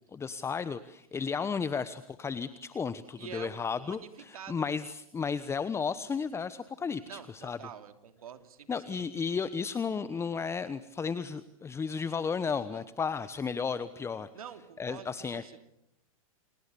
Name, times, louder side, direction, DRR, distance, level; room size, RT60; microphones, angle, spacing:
voice 1, 0.1-7.6 8.7-14.3 14.8-15.4, left 5 dB, 15° left, 14 dB, 1.1 m, -33 dB
voice 2, 3.2-4.8 7.1-9.1 12.5-12.9 14.3-15.6, right 8 dB, 80° right, 9 dB, 2.9 m, -47 dB
29.5 x 29.0 x 7.0 m, 0.79 s
hypercardioid pair, 120°, 18 cm